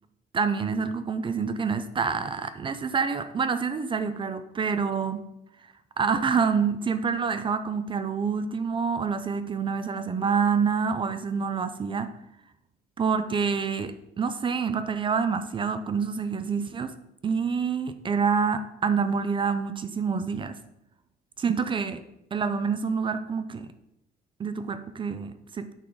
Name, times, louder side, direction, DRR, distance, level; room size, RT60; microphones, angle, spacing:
voice 1, 0.3-5.3 6.0-12.1 13.0-16.9 17.2-20.5 21.4-22.0 22.3-23.7 24.4-25.7, right 5 dB, 30° right, 11 dB, 0.5 m, -27 dB
9.0 x 4.0 x 4.7 m, 0.87 s
cardioid pair, 110°, 17 cm